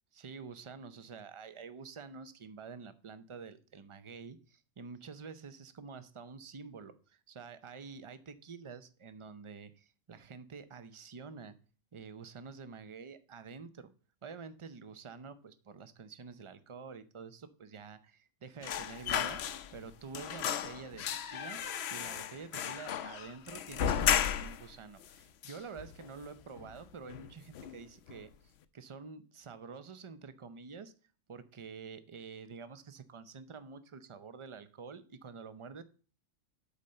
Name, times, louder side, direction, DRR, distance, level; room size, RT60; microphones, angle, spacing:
voice 1, 0.2-11.5 11.9-13.9 14.2-19.4 19.7-21.6 21.9-30.9 31.3-35.8, right 5 dB, 35° right, 12 dB, 0.5 m, -48 dB
sound 1, 18.6-19.9 20.1-24.7 25.0-25.1 25.4-26.2 26.6-26.8 27.1-27.8 28.1-28.3, left 9 dB, 60° left, 0.8 m, -34 dB
8.2 x 4.2 x 6.6 m, 0.38 s
omnidirectional pair, 1.4 m